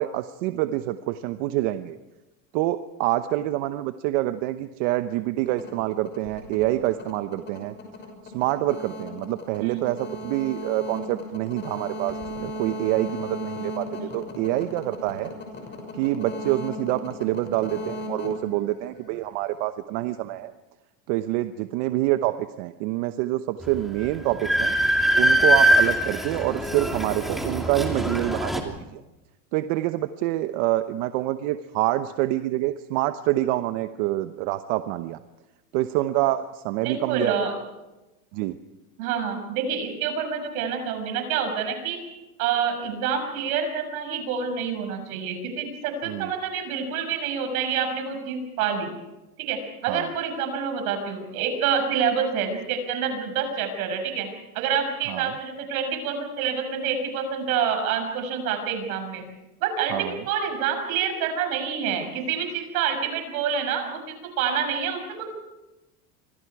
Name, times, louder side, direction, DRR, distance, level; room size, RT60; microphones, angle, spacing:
voice 1, 0.0-2.0 2.5-7.7 8.3-15.3 15.9-20.5 21.1-24.7 25.1-29.0 29.5-35.2 35.7-37.3 38.3-38.6 46.1-46.3 49.9-50.1 55.1-55.3 59.9-60.2, right 15 dB, 55° right, 10 dB, 1.0 m, -26 dB
sound 1, 5.5-19.3, left 1 dB, 25° left, 6.1 m, -36 dB
voice 2, 9.6-9.9 14.0-14.1 36.8-37.5 39.0-42.0 42.4-48.9 49.4-54.3 54.5-59.2 59.6-65.3, right 7 dB, 75° right, 6 dB, 6.6 m, -27 dB
Train, 23.6-23.7 24.0-28.6, right 1 dB, ahead, 2.8 m, -22 dB
27.5 x 25.0 x 4.8 m, 1.0 s
supercardioid pair, 150°, 43 cm